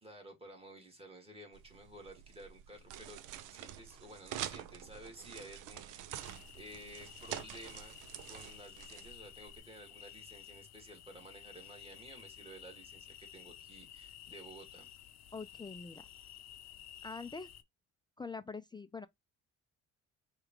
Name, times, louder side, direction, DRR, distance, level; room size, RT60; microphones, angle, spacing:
voice 1, 0.0-3.2 3.5-8.0 8.3-14.9, right 1 dB, 20° right, 2.0 m, -53 dB
sound 1, 1.5-9.6, right 11 dB, 90° right, 0.5 m, -47 dB
sound 2, 6.2-17.6, left 11 dB, 60° left, 0.6 m, -53 dB
voice 2, 15.3-16.1 17.0-17.5 18.2-19.1, left 4 dB, 15° left, 0.3 m, -44 dB
4.8 x 2.4 x 3.1 m
cardioid pair, 90°, 30 cm